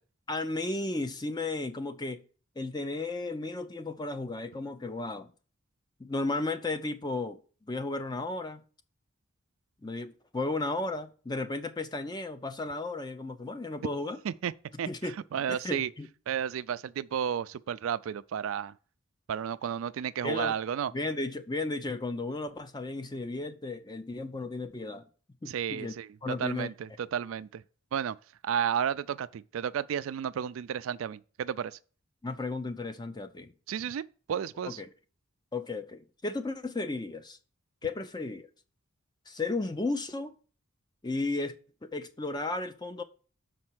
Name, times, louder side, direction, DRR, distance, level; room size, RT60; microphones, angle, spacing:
voice 1, 0.3-2.2 2.6-5.3 6.0-8.6 9.8-14.2 14.9-16.1 20.2-20.5 20.9-25.1 25.4-25.9 26.2-26.7 32.2-33.5 34.6-34.9 35.5-37.4 37.8-38.5 39.3-40.3 41.0-41.5 41.8-43.0, left 2 dB, 20° left, 0.5 m, -34 dB
voice 2, 14.8-15.9 16.3-18.7 19.3-20.9 25.5-27.6 27.9-28.2 28.4-31.8 33.7-34.8, right 8 dB, 75° right, 0.3 m, -32 dB
6.5 x 4.3 x 6.1 m
head